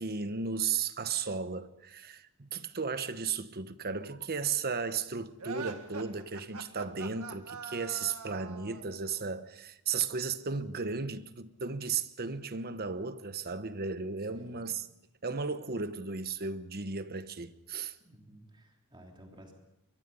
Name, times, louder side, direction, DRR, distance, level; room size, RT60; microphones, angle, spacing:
voice 1, 0.0-14.8 15.2-17.9, right 5 dB, 45° right, 1.1 m, -35 dB
sound 1, 5.4-8.9, right 4 dB, 70° right, 1.9 m, -43 dB
voice 2, 14.2-14.7 18.0-19.5, equal, 20° right, 3.2 m, -55 dB
23.5 x 22.5 x 5.5 m
head